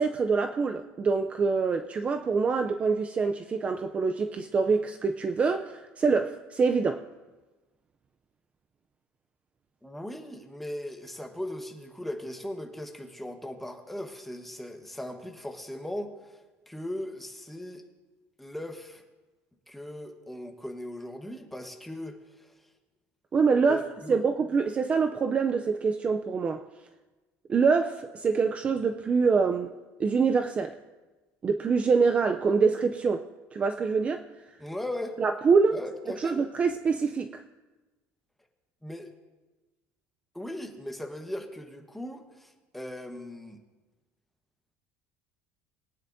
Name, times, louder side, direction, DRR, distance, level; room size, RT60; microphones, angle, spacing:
voice 1, 0.0-7.0 23.3-23.8 24.1-26.6 27.5-29.7 30.0-30.8 31.4-33.2 33.5-34.2 35.2-35.8 36.1-37.4, right 5 dB, 25° right, 7 dB, 0.4 m, -25 dB
voice 2, 9.8-16.4 16.7-17.8 18.4-19.0 19.7-22.5 23.7-24.2 34.6-35.2 35.7-36.4 38.8-39.1 40.3-43.6, left 1 dB, 5° left, 3 dB, 1.1 m, -38 dB
22.0 x 9.8 x 2.6 m, 1.2 s
cardioid pair, 150°, 5 cm